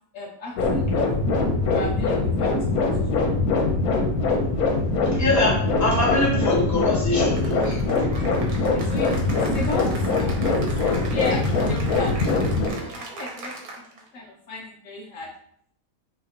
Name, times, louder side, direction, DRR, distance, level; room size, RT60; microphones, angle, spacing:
voice 1, 0.1-1.1 1.6-2.5 2.8-3.2 8.7-10.4 11.1-12.2 12.8-13.7 13.9-15.3, left 1 dB, 65° left, -2 dB, 1.0 m, -35 dB
sound 1, 0.6-12.7, left 3 dB, 90° left, 1.3 m, -22 dB
voice 2, 4.8-8.1, left 1 dB, 15° left, -5 dB, 1.1 m, -24 dB
Cheering / Applause, 7.4-14.1, right 2 dB, 85° right, 1.4 m, -39 dB
5.9 x 2.8 x 2.8 m, 0.68 s
omnidirectional pair, 1.5 m